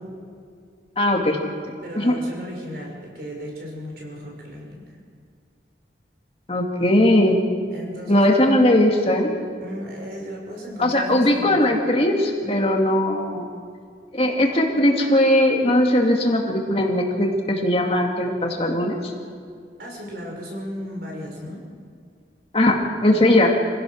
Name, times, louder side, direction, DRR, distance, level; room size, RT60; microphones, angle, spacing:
voice 1, 1.0-1.4 1.9-2.1 6.5-7.4 8.1-9.3 10.8-13.4 14.1-19.1 22.5-22.8 23.0-23.5, left 1 dB, 30° left, 1 dB, 2.2 m, -19 dB
voice 2, 1.8-4.8 7.7-8.5 9.6-11.6 12.4-12.6 19.8-21.6 23.1-23.3, equal, 60° right, 0 dB, 5.8 m, -35 dB
25.5 x 16.0 x 6.4 m, 2.2 s
head